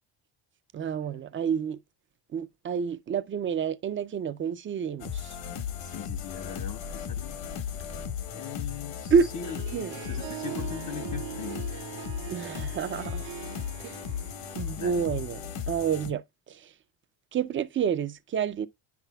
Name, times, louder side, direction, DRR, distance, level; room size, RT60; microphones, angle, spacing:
voice 1, 0.7-1.8 2.3-5.4 9.1-9.3 9.7-10.0 12.3-13.2 13.8-14.0 14.6-15.4 15.7-16.2 16.5-16.7 17.3-18.7, right 6 dB, 30° right, 0.4 m, -28 dB
sound 1, 5.0-16.1, left 8 dB, 70° left, 1.2 m, -36 dB
voice 2, 5.8-7.4 8.3-11.9 14.7-15.0, left 10 dB, 40° left, 0.5 m, -41 dB
Harp, 9.1-15.6, right 14 dB, 70° right, 0.8 m, -42 dB
9.8 x 5.8 x 2.2 m
cardioid pair, 130°, 48 cm